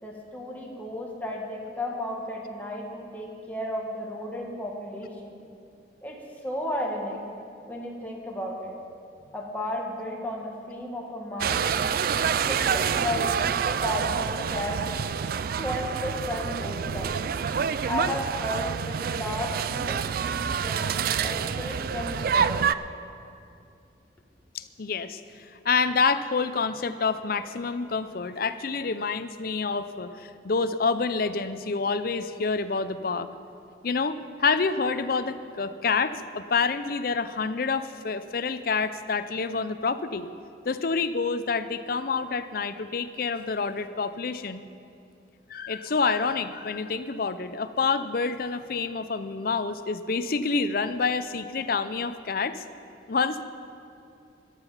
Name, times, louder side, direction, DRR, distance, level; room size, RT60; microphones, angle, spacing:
voice 1, 0.0-5.3 6.0-7.2 7.7-8.8 9.3-14.9 15.4-17.2 17.8-20.9 21.2-22.7, left 1 dB, 10° left, -2 dB, 1.7 m, -34 dB
sound 1, 11.4-22.7, right 7 dB, 50° right, 0.3 m, -27 dB
voice 2, 24.5-25.2 25.6-33.3 33.8-40.3 40.6-44.7 45.5-52.6 53.1-53.4, left 4 dB, 55° left, 12 dB, 0.6 m, -27 dB
13.5 x 12.5 x 5.7 m, 2.6 s
head